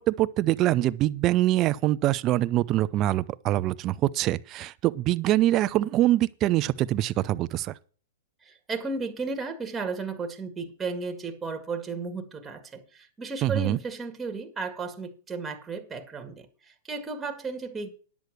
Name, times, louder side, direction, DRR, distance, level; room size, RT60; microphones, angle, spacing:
voice 1, 0.0-7.7 13.4-13.8, right 15 dB, 35° right, 0.6 m, -24 dB
voice 2, 8.4-17.9, right 4 dB, 15° right, 1.9 m, -34 dB
10.5 x 8.2 x 6.3 m
hypercardioid pair, 130°, 0 cm